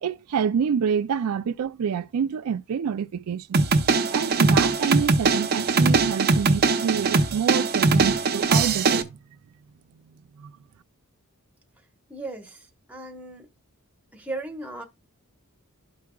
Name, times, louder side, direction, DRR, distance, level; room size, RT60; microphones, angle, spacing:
voice 1, 0.0-3.6 4.1-9.2 10.4-10.5, right 7 dB, 80° right, 0.4 m, -27 dB
sound 1, 3.5-9.0, right 4 dB, 45° right, 0.7 m, -21 dB
voice 2, 12.1-13.5 14.1-14.8, right 2 dB, 5° right, 1.2 m, -36 dB
12.5 x 4.7 x 2.3 m
head